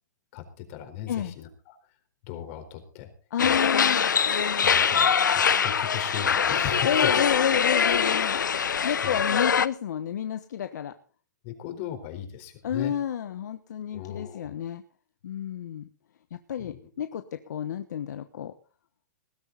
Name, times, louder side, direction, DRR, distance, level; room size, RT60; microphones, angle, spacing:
voice 1, 0.3-1.7 2.2-3.1 3.4-3.6 4.4-7.5 7.9-8.1 9.0-9.2 11.4-12.9 13.9-14.5 16.6-16.8, left 10 dB, 45° left, 7 dB, 4.2 m, -38 dB
voice 2, 3.3-4.0 6.8-8.4 8.8-11.0 12.6-14.8 15.2-15.9 16.3-18.5, left 9 dB, 70° left, 10 dB, 1.2 m, -30 dB
sound 1, 3.4-9.7, left 7 dB, 90° left, 0.8 m, -23 dB
20.0 x 12.5 x 4.1 m, 0.39 s
hypercardioid pair, 130°, 10 cm